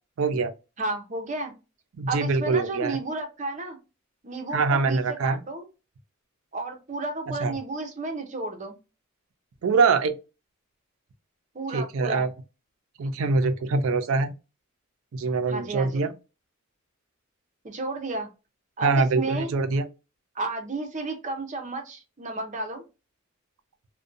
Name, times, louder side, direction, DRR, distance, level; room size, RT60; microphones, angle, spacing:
voice 1, 0.2-0.5 2.0-3.0 4.5-5.4 7.4-7.5 9.6-10.2 11.7-12.3 13.0-14.3 15.1-16.1 18.8-19.8, right 4 dB, 80° right, 0.4 m, -24 dB
voice 2, 0.8-1.5 2.1-3.8 4.2-5.7 6.5-8.8 11.5-12.3 15.5-16.0 17.6-18.3 18.8-19.5 20.3-22.8, right 2 dB, 35° right, 0.6 m, -32 dB
2.5 x 2.1 x 2.5 m
head